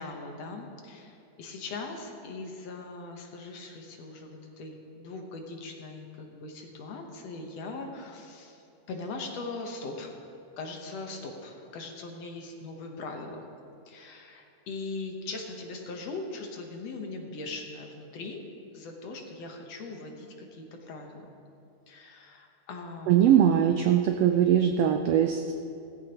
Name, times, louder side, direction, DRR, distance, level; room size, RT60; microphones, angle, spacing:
voice 1, 0.0-10.2 10.6-13.5 13.9-18.4 18.7-21.4 21.9-23.5, left 3 dB, 65° left, 2 dB, 2.1 m, -40 dB
voice 2, 23.1-25.5, right 10 dB, 90° right, 5 dB, 1.4 m, -21 dB
17.0 x 14.5 x 2.9 m, 2.7 s
omnidirectional pair, 3.4 m